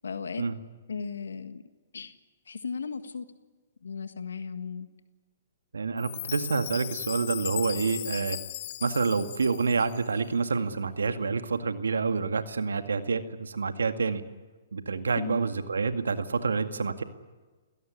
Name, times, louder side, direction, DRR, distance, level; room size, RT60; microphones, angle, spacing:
voice 1, 0.0-0.4 0.9-1.6 1.9-2.2 2.4-3.3 3.8-4.9 15.2-15.4, left 5 dB, 85° left, 11 dB, 1.6 m, -36 dB
voice 2, 5.7-8.4 8.8-14.2 14.7-17.0, right 4 dB, 90° right, 9 dB, 2.1 m, -28 dB
Chime, 6.0-10.2, left 14 dB, 50° left, 0.8 m, -37 dB
29.5 x 17.5 x 9.5 m, 1.3 s
hypercardioid pair, 135°, 0 cm